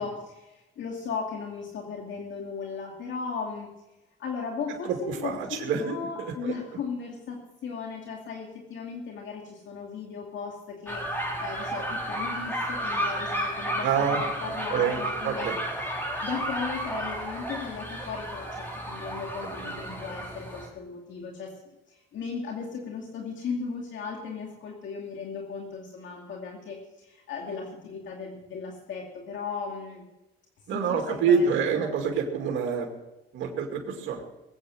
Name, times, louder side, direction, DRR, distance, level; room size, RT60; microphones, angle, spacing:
voice 1, 0.0-3.7 4.2-15.5 16.2-21.5 21.9-30.0 30.7-31.5 31.8-31.9, left 5 dB, 70° left, 0 dB, 2.4 m, -36 dB
voice 2, 4.8-6.0 6.4-6.5 13.8-14.2 14.7-15.0 15.2-15.6 19.6-19.7 30.7-32.9 33.3-34.2, right 6 dB, 80° right, 1 dB, 2.5 m, -26 dB
sound 1, 10.9-20.7, equal, 10° left, 4.6 m, -32 dB
21.0 x 8.6 x 6.4 m, 0.97 s
cardioid pair, 90°, 20 cm